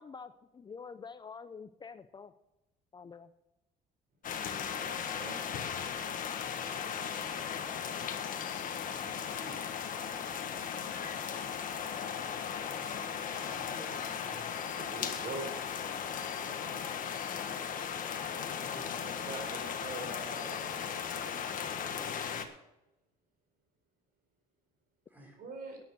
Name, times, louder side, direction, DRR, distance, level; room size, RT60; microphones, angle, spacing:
voice 1, 0.0-2.3 2.9-3.3, left 5 dB, 25° left, 11 dB, 0.6 m, -47 dB
sound 1, 4.2-22.4, left 7 dB, 55° left, 1.5 m, -37 dB
voice 2, 4.8-5.4 14.7-15.5 19.0-21.9 25.4-25.8, right 3 dB, 60° right, 4 dB, 4.4 m, -44 dB
voice 3, 8.6-10.0 13.1-14.3 16.2-16.8 18.4-19.3 25.1-25.4, equal, 10° right, 1 dB, 4.6 m, -53 dB
12.0 x 9.5 x 6.3 m, 0.94 s
cardioid pair, 110°, 17 cm